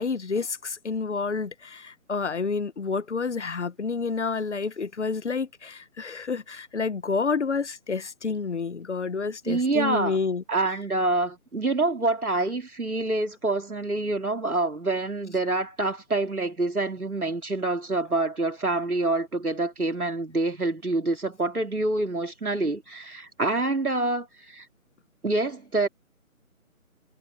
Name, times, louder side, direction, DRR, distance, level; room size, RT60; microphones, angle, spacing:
voice 1, 0.0-10.8, left 4 dB, 55° left, 1.2 m, -29 dB
voice 2, 9.5-10.2 10.5-24.7 25.2-25.9, right 2 dB, 90° right, 3.8 m, -26 dB
figure-of-eight pair, 160°, 42 cm